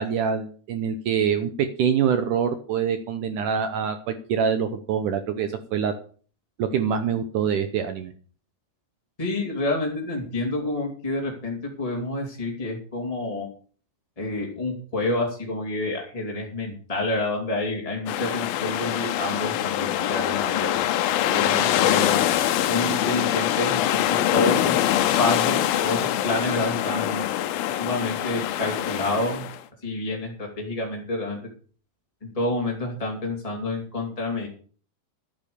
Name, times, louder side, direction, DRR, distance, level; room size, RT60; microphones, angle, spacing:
voice 1, 0.0-1.5 1.8-5.9 6.6-8.1, right 7 dB, 75° right, 9 dB, 1.9 m, -25 dB
voice 2, 9.2-13.4 14.2-20.7 21.3-22.2 22.7-24.8 25.2-27.3 27.8-29.4 29.8-31.4 32.2-34.5, left 2 dB, 10° left, -1 dB, 1.8 m, -28 dB
sound 1, 18.1-29.6, left 12 dB, 75° left, 2.5 m, -24 dB
11.5 x 8.9 x 6.9 m, 0.43 s
omnidirectional pair, 4.7 m